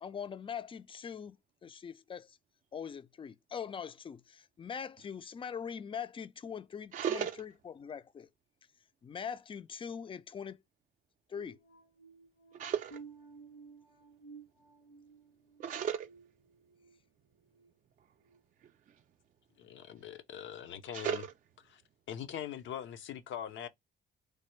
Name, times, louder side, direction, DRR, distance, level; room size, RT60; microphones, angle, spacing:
voice 1, 0.0-2.4 2.7-8.3 9.0-10.6 11.3-11.6, left 7 dB, 25° left, 0.3 m, -42 dB
voice 2, 6.9-7.4 12.5-13.0 15.6-16.1 18.6-19.0 20.9-21.3, right 8 dB, 40° right, 0.4 m, -35 dB
sound 1, 11.3-17.0 17.4-17.7 18.2-18.4, right 5 dB, 90° left, 2.0 m, -55 dB
voice 3, 19.6-21.2 21.7-21.8 22.1-23.7, left 10 dB, 75° left, 0.6 m, -42 dB
3.3 x 2.1 x 3.0 m
cardioid pair, 90°, 20 cm